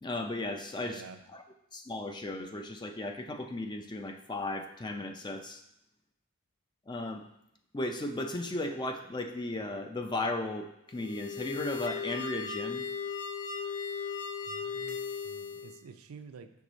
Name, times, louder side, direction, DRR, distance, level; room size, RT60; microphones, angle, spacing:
voice 1, 0.0-1.0 1.3-1.4 1.7-5.6 6.9-7.3 7.7-12.8, left 2 dB, 20° left, 6 dB, 0.4 m, -35 dB
voice 2, 0.8-1.2 14.4-16.5, right 5 dB, 75° right, 9 dB, 0.5 m, -49 dB
sound 1, 10.9-15.8, left 6 dB, 80° left, 0.7 m, -37 dB
6.1 x 4.7 x 3.9 m, 0.79 s
head